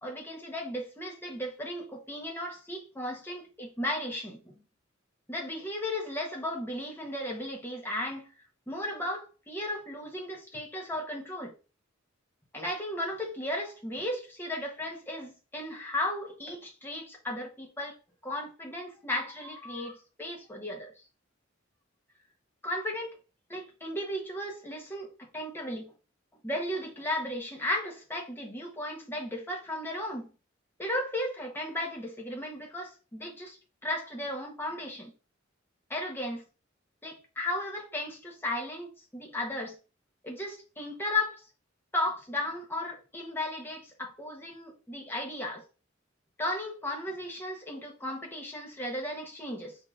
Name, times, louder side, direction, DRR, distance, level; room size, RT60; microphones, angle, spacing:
voice 1, 0.0-4.6 5.3-8.3 8.7-11.5 12.5-18.0 18.2-20.9 22.6-23.2 23.5-25.9 26.4-30.3 30.8-35.1 35.9-36.4 37.0-39.8 40.2-41.5 41.9-45.6 46.4-49.8, left 1 dB, 10° left, 0.9 m, -35 dB
4.6 x 3.5 x 2.4 m
head